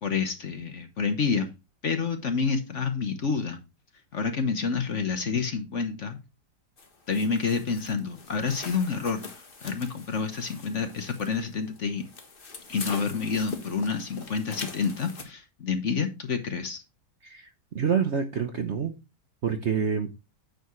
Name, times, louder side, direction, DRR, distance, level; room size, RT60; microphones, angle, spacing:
voice 1, 0.0-1.5 1.8-3.6 4.1-6.2 7.1-12.1 12.7-16.8, left 5 dB, 45° left, 1.2 m, -28 dB
sound 1, 6.8-15.2, left 4 dB, 30° left, 1.4 m, -43 dB
voice 2, 17.7-19.0 19.4-20.1, right 7 dB, 50° right, 0.9 m, -27 dB
9.3 x 7.1 x 3.1 m
omnidirectional pair, 1.9 m